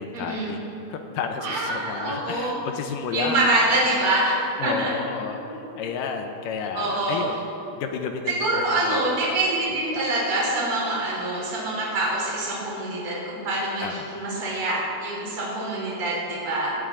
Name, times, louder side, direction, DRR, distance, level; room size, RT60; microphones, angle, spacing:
voice 1, 0.0-3.5 4.6-7.5 7.8-9.0 9.4-10.0 13.8-14.1, left 6 dB, 75° left, 4 dB, 2.2 m, -32 dB
voice 2, 1.4-2.6 3.1-4.3 4.6-4.9 5.4-5.8 6.7-7.2 8.4-16.8, right 2 dB, 35° right, -6 dB, 4.2 m, -25 dB
19.0 x 12.5 x 3.8 m, 2.9 s
omnidirectional pair, 4.4 m